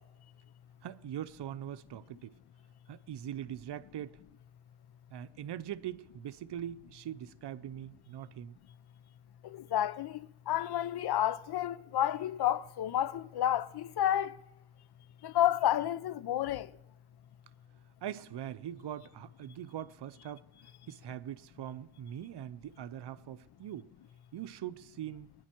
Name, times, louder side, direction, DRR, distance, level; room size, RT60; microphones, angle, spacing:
voice 1, 0.8-2.4 2.9-4.2 5.1-8.6 18.0-20.5 20.9-23.9 24.3-25.3, right 11 dB, 55° right, 0.7 m, -42 dB
voice 2, 9.5-10.2 10.5-14.3 15.2-16.7, left 11 dB, 50° left, 0.6 m, -30 dB
24.0 x 10.0 x 4.5 m
cardioid pair, 120°, 50 cm